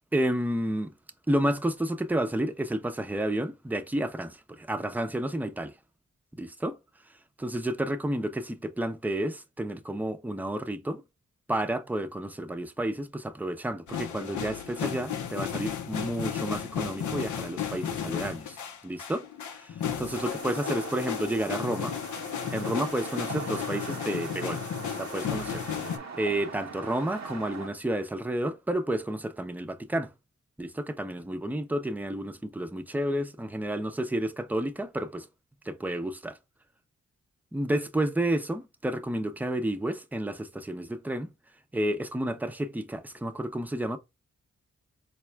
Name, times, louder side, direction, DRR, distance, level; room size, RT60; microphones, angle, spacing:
voice 1, 0.1-0.9 1.3-5.7 6.4-6.8 7.4-11.0 11.5-18.6 18.8-19.3 19.5-21.9 22.5-24.7 25.0-30.1 30.6-35.3 35.6-36.4 37.5-41.3 41.7-44.0, right 1 dB, 5° right, 0.6 m, -31 dB
sound 1, 13.9-26.0, left 8 dB, 80° left, 0.6 m, -34 dB
sound 2, 20.0-27.7, right 5 dB, 65° right, 0.8 m, -41 dB
4.1 x 2.3 x 3.2 m
supercardioid pair, 45°, 30 cm